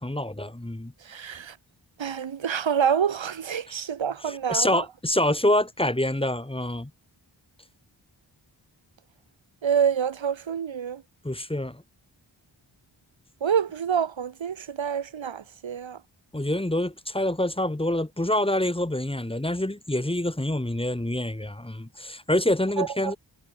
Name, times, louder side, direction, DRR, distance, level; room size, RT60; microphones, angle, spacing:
voice 1, 0.0-0.9 4.3-6.9 11.2-11.8 16.3-23.2, left 1 dB, 10° left, 1.7 m, -26 dB
voice 2, 1.0-1.6 2.0-4.8 9.6-11.0 13.4-16.0 22.8-23.1, right 7 dB, 75° right, 1.1 m, -27 dB
wide cardioid pair, 90°, 46 cm